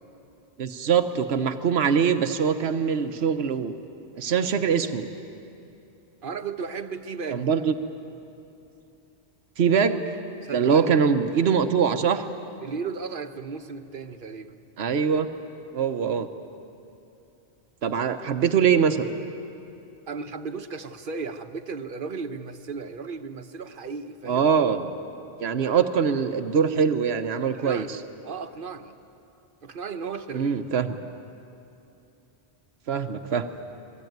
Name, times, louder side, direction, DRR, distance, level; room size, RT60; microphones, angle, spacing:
voice 1, 0.6-3.7 4.2-5.1 7.3-7.7 9.6-10.0 10.5-12.2 14.8-15.3 15.7-16.3 17.8-19.1 24.2-24.9 25.4-28.0 30.3-30.9 32.9-33.5, right 6 dB, 80° right, 8 dB, 1.2 m, -23 dB
voice 2, 6.2-7.6 10.4-10.9 12.6-14.6 20.1-24.4 27.4-27.9 28.2-29.0 29.6-30.6, right 5 dB, 55° right, 8 dB, 1.2 m, -35 dB
27.5 x 20.5 x 9.4 m, 2.8 s
omnidirectional pair, 1.1 m